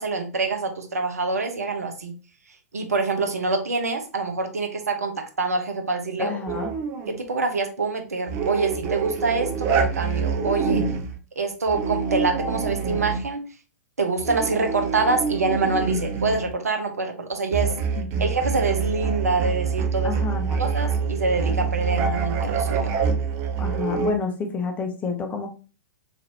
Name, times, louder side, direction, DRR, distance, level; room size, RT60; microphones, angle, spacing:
voice 1, 0.0-2.1 2.7-6.6 7.1-10.8 11.4-13.4 14.0-17.7 18.2-20.2 20.6-22.9, right 3 dB, 70° right, 5 dB, 0.8 m, -25 dB
voice 2, 6.2-6.7 18.0-18.3 20.0-20.6 23.6-25.5, left 4 dB, 15° left, 3 dB, 0.8 m, -29 dB
sound 1, 6.5-7.2 8.3-11.2 11.7-13.3 14.2-16.5 17.5-24.1, right 5 dB, 30° right, 0.6 m, -26 dB
4.1 x 3.2 x 2.8 m, 0.35 s
figure-of-eight pair, 105°, 8 cm